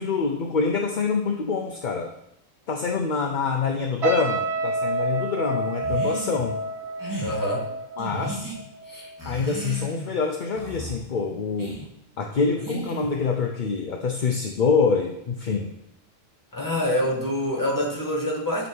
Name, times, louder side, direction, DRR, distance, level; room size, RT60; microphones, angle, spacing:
voice 1, 0.0-2.1 2.7-6.6 8.0-8.5 9.2-11.8 12.2-15.7, left 5 dB, 50° left, 2 dB, 0.7 m, -25 dB
sound 1, 4.0-9.3 9.6-9.9, right 1 dB, 55° right, 1.7 m, -29 dB
sound 2, 5.8-6.4 7.0-7.3 8.0-8.6 9.2-10.1 10.5-11.0 11.6-11.8 12.6-13.2, right 2 dB, 15° right, 2.0 m, -34 dB
voice 2, 7.2-7.7 8.9-9.1 16.5-18.7, left 1 dB, 15° left, -1 dB, 1.8 m, -26 dB
9.3 x 4.0 x 5.5 m, 0.82 s
omnidirectional pair, 1.3 m